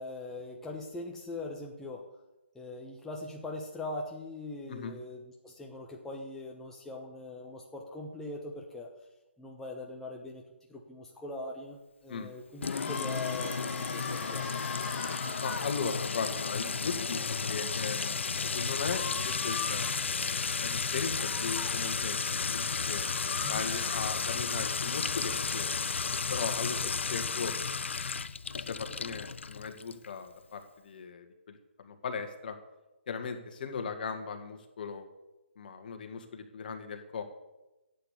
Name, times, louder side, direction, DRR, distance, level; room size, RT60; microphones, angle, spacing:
voice 1, 0.0-2.0 2.5-8.9 9.4-10.4 10.7-14.4 23.4-23.7 26.8-26.9, left 2 dB, 5° left, -1 dB, 1.0 m, -41 dB
Sink (filling or washing) / Trickle dribble / Fill (with liquid), 12.6-30.1, left 5 dB, 70° left, 0.6 m, -33 dB
sound 1, 12.6-15.7 18.8-20.0 21.1-21.7 22.9-24.1, left 5 dB, 20° left, 2.0 m, -41 dB
voice 2, 15.4-18.1 18.5-20.3 20.6-23.1 23.5-25.8 26.3-27.8 28.6-31.6 31.8-32.6 33.1-35.1 35.6-37.2, left 5 dB, 45° left, 6 dB, 1.9 m, -38 dB
11.5 x 8.5 x 8.4 m, 1.0 s
figure-of-eight pair, 155°, 7 cm